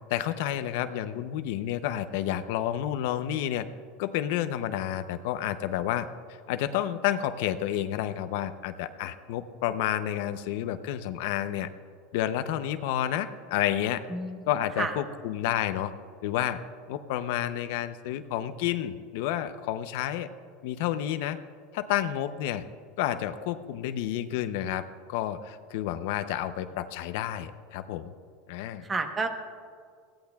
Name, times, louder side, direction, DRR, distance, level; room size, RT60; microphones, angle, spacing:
voice 1, 0.1-3.7 4.0-6.1 6.5-11.7 12.1-14.1 14.5-15.9 16.2-16.6 16.9-20.3 20.6-21.4 21.7-22.7 23.0-24.8 25.1-28.1 28.5-28.8, left 11 dB, 65° left, 10 dB, 0.6 m, -30 dB
voice 2, 14.1-14.5 14.8-14.9 28.8-29.3, right 3 dB, 15° right, 6 dB, 1.0 m, -30 dB
21.5 x 16.0 x 2.3 m, 2.1 s
supercardioid pair, 160°, 0 cm